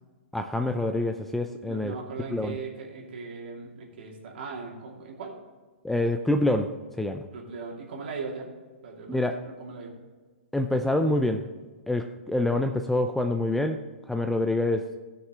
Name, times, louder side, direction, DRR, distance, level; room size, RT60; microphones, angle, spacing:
voice 1, 0.3-1.9 2.3-2.5 5.8-7.3 9.1-9.4 10.5-11.5 11.9-14.9, left 1 dB, 5° left, 6 dB, 0.4 m, -26 dB
voice 2, 1.6-5.3 7.3-8.5 8.8-9.9, right 4 dB, 55° right, -1 dB, 2.7 m, -39 dB
15.0 x 6.5 x 3.7 m, 1.4 s
figure-of-eight pair, 120°, 7 cm